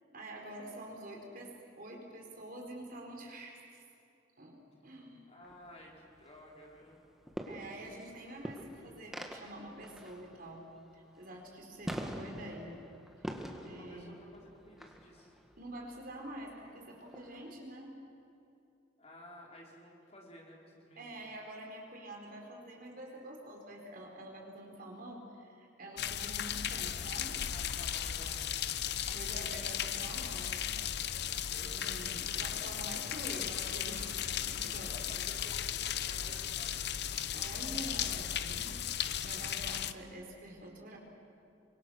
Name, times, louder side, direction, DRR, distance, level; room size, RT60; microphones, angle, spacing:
voice 1, 0.1-3.8 4.4-4.6 4.8-5.2 7.4-10.6 10.9-12.7 13.6-14.1 15.6-17.9 21.0-27.4 29.1-30.7 31.6-35.3 37.3-41.0, right 1 dB, 50° right, 0 dB, 4.6 m, -47 dB
voice 2, 5.3-7.0 13.8-15.4 19.0-21.2 27.4-28.6 28.8-29.2 31.5-32.4 35.0-37.6, left 1 dB, 35° left, -2 dB, 4.5 m, -55 dB
sound 1, 5.4-17.5, equal, ahead, 1.9 m, -46 dB
sound 2, 26.0-39.9, left 9 dB, 60° left, 0.8 m, -36 dB
28.0 x 24.0 x 6.6 m, 2.7 s
head